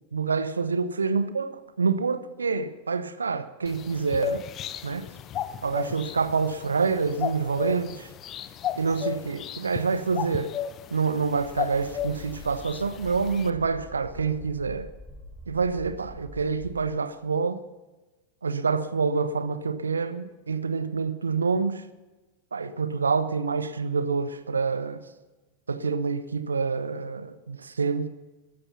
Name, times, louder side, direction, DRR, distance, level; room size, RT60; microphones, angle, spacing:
voice 1, 0.1-1.5 1.8-4.4 4.8-5.0 5.6-8.1 8.8-10.5 10.9-14.9 15.5-17.6 18.4-21.8 22.5-25.0 25.7-28.1, right 5 dB, 75° right, 0.9 m, -27 dB
sound 1, 3.7-13.5, left 9 dB, 30° left, 0.8 m, -35 dB
sound 2, 11.4-16.7, left 1 dB, 5° right, 3.6 m, -45 dB
13.5 x 13.5 x 5.6 m
figure-of-eight pair, 90°, 0 cm